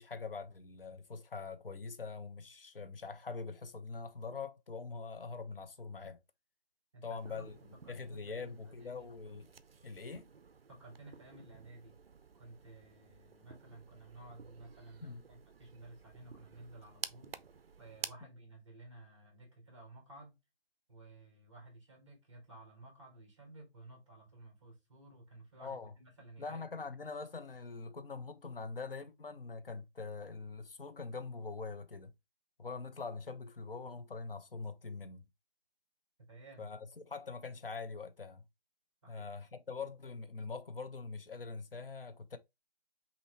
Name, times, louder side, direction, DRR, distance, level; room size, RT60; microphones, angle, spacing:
voice 1, 0.0-6.2 7.0-7.6 7.9-9.5 9.8-10.3 15.0-15.2 25.6-25.9 26.4-32.1 32.6-35.3 36.6-38.4 39.1-42.4, left 4 dB, 60° left, 0.8 m, -43 dB
voice 2, 6.9-7.5 7.8-9.1 10.7-12.0 12.4-17.4 17.8-20.3 20.9-26.6 36.2-36.7 39.0-39.3, right 2 dB, 30° right, 1.5 m, -55 dB
sound 1, 7.1-18.1, right 5 dB, 65° right, 0.5 m, -52 dB
5.6 x 2.7 x 3.1 m
figure-of-eight pair, 170°, 32 cm